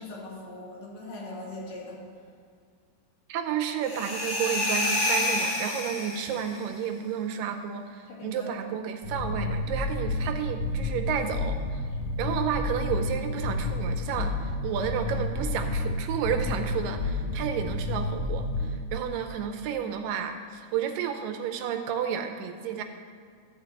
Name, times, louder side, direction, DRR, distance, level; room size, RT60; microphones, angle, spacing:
voice 1, 0.0-2.0 8.1-8.5, left 2 dB, 90° left, -5 dB, 4.2 m, -40 dB
voice 2, 3.3-11.8 12.2-22.8, right 8 dB, 80° right, 5 dB, 2.1 m, -31 dB
sound 1, 3.8-6.6, left 1 dB, 50° left, 2.6 m, -28 dB
sound 2, 9.0-18.7, left 2 dB, 65° left, 2.3 m, -30 dB
13.0 x 4.5 x 7.4 m, 2.1 s
omnidirectional pair, 4.2 m